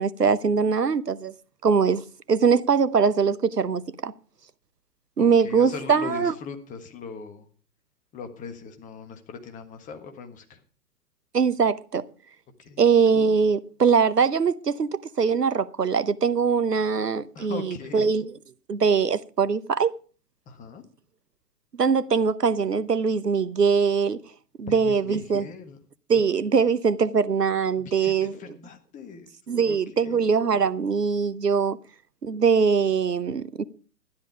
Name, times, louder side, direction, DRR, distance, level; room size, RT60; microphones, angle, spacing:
voice 1, 0.0-1.3 1.6-2.0 2.3-4.1 5.2-6.3 11.3-12.0 12.8-18.3 18.7-19.9 21.8-24.2 24.6-25.5 26.1-28.3 29.5-31.8 32.2-33.6, right 6 dB, 85° right, 0.9 m, -22 dB
voice 2, 5.2-7.5 8.1-10.6 12.6-12.8 17.3-18.1 20.5-20.8 24.7-25.8 27.8-29.3 29.6-30.2, left 5 dB, 15° left, 1.5 m, -40 dB
12.5 x 10.5 x 4.8 m
figure-of-eight pair, 115°, 47 cm